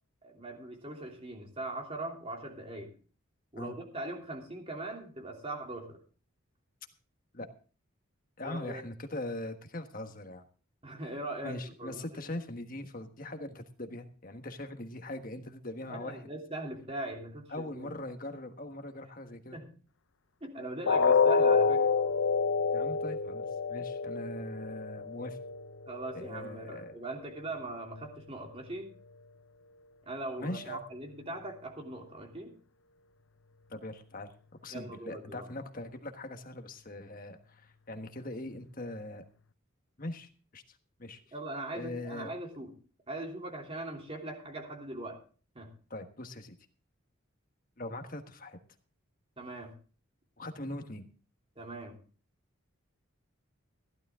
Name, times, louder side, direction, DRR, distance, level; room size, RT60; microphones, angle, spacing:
voice 1, 0.2-2.9 3.5-6.0 8.4-8.8 10.8-12.3 15.9-17.9 19.5-19.7 20.4-21.9 25.9-28.9 30.0-32.5 34.7-35.5 41.3-42.7 43.1-45.2 45.5-45.7 49.4-49.7 51.6-52.0, right 2 dB, 25° right, 1 dB, 3.0 m, -40 dB
voice 2, 8.4-10.4 11.4-16.2 17.5-19.6 22.7-25.4 26.1-26.9 30.4-30.8 33.7-34.3 34.6-39.2 40.0-40.6 41.0-41.2 41.7-42.3 45.9-46.5 47.8-48.6 50.4-51.0, left 1 dB, 40° left, 6 dB, 1.4 m, -41 dB
sound 1, 20.9-26.8 27.2-27.4 27.9-28.0, left 5 dB, 70° left, 0.6 m, -28 dB
15.5 x 12.0 x 3.7 m, 0.39 s
head